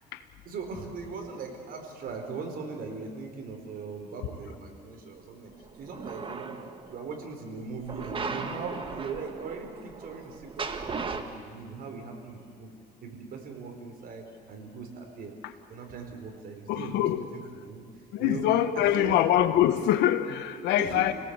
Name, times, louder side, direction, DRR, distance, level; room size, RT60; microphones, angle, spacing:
voice 1, 0.4-5.5 5.8-6.5 6.9-12.7 13.0-15.3 15.7-18.4 18.7-19.2 20.5-21.1, right 4 dB, 60° right, 3 dB, 4.8 m, -40 dB
sound 1, 5.6-7.0 7.8-11.2, right 4 dB, 30° right, 1.8 m, -37 dB
voice 2, 16.7-17.2 18.1-21.1, left 12 dB, 85° left, 10 dB, 1.5 m, -24 dB
30.0 x 18.5 x 8.3 m, 2.1 s
cardioid pair, 110°, 17 cm